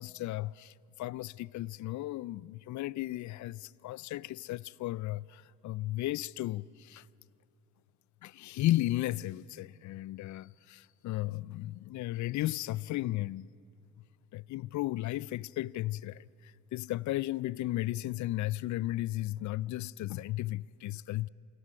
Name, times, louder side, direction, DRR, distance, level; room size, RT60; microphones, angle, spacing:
voice 1, 0.0-7.0 8.2-13.5 14.3-21.3, left 16 dB, 50° left, 0.5 m, -35 dB
27.5 x 11.5 x 9.6 m
supercardioid pair, 80°, 37 cm